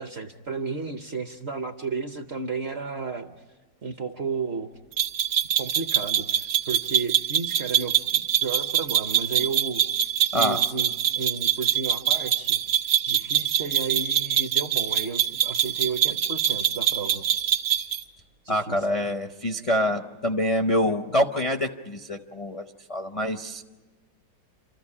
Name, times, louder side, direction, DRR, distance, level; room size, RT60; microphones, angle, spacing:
voice 1, 0.0-3.3 3.8-4.7 5.6-12.6 13.0-17.2 18.4-19.1, right 4 dB, 50° right, 7 dB, 0.9 m, -33 dB
sound 1, 5.0-18.0, right 9 dB, 75° right, 1.7 m, -24 dB
voice 2, 18.5-23.6, equal, 40° left, 4 dB, 0.5 m, -26 dB
28.0 x 14.0 x 9.7 m, 1.2 s
omnidirectional pair, 1.9 m